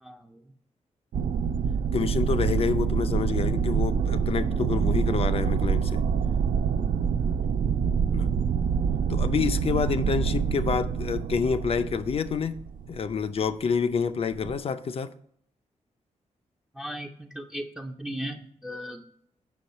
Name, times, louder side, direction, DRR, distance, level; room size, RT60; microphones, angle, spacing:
voice 1, 0.0-0.4 7.4-7.6 16.7-19.0, equal, 5° right, 0.5 m, -37 dB
sound 1, 1.1-13.2 14.3-14.6, right 6 dB, 85° right, 0.5 m, -26 dB
voice 2, 1.9-6.0 8.1-8.3 9.1-12.6 12.9-15.1, left 6 dB, 45° left, 0.5 m, -28 dB
8.3 x 6.2 x 4.2 m
wide cardioid pair, 175°, 13 cm